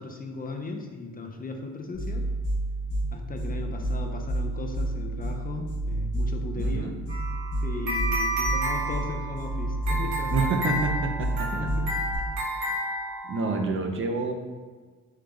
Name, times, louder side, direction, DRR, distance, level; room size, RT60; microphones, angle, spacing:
voice 1, 0.0-2.3 3.1-6.9 7.6-10.5 11.5-12.3, left 3 dB, 30° left, 3 dB, 0.4 m, -36 dB
sound 1, 1.9-12.2, right 1 dB, 80° left, 1.1 m, -30 dB
voice 2, 6.6-6.9 10.3-11.5 13.2-14.3, right 3 dB, 40° right, 4 dB, 0.6 m, -28 dB
sound 2, 7.1-13.6, right 1 dB, 70° right, 1.4 m, -31 dB
3.7 x 3.2 x 3.4 m, 1.4 s
cardioid pair, 90°, 30 cm